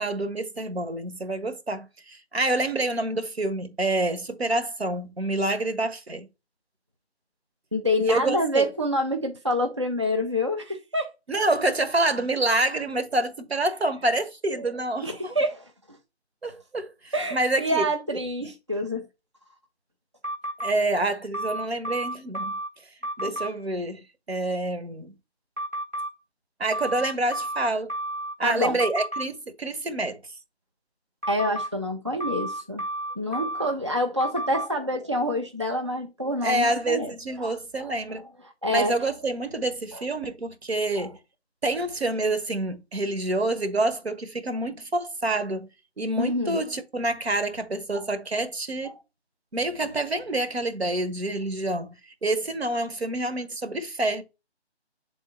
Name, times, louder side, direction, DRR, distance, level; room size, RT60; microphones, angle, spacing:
voice 1, 0.0-6.2 8.0-8.7 11.3-15.3 16.4-17.9 20.6-22.5 23.2-24.0 24.3-25.1 26.6-27.9 28.4-30.2 36.4-38.2 38.7-41.2 41.6-45.7 46.0-48.9 49.5-51.9 52.2-54.2, right 2 dB, 65° right, 1.3 m, -27 dB
voice 2, 7.7-11.1 14.6-14.7 15.0-16.0 17.1-19.1 23.2-23.3 28.4-28.8 31.3-32.8 33.2-38.2 38.6-38.9 39.9-40.0 41.0-41.1 46.2-46.6 47.9-48.0, left 1 dB, 25° right, 0.4 m, -27 dB
sound 1, 20.2-20.7 21.3-22.7 23.0-23.5 25.6-26.1 26.7-28.3 28.8-29.2 31.2-31.7 32.2-33.7 34.2-34.7, right 1 dB, 10° right, 0.9 m, -31 dB
8.0 x 3.7 x 4.2 m
figure-of-eight pair, 155°, 34 cm